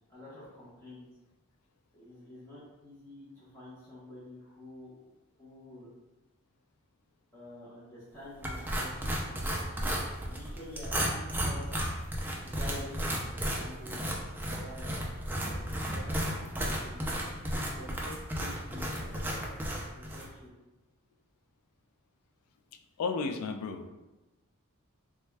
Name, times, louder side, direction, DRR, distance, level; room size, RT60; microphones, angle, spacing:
voice 1, 0.1-1.1 1.9-4.9 5.4-5.9 7.3-9.6 10.2-11.6 12.4-14.0 14.4-17.1 17.7-19.5 19.9-20.5, left 1 dB, 10° left, -11 dB, 0.8 m, -48 dB
sound 1, 8.4-20.3, equal, 10° right, 0.3 m, -34 dB
voice 2, 23.0-23.9, left 4 dB, 85° left, 6 dB, 0.3 m, -33 dB
3.4 x 2.2 x 3.2 m, 1.1 s
head